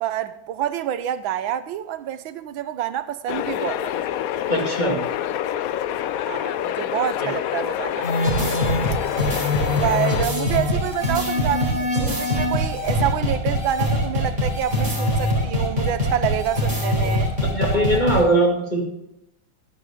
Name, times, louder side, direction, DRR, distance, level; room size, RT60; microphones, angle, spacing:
voice 1, 0.0-3.9 6.3-8.1 9.8-17.3, right 11 dB, 85° right, 1.5 m, -27 dB
sound 1, 3.3-10.3, left 11 dB, 85° left, 0.7 m, -27 dB
voice 2, 4.5-5.0 17.0-17.1 17.5-18.8, right 1 dB, 25° left, 2.3 m, -20 dB
sound 2, 8.0-18.2, left 1 dB, 20° right, 4.6 m, -23 dB
12.5 x 10.5 x 3.7 m
omnidirectional pair, 2.1 m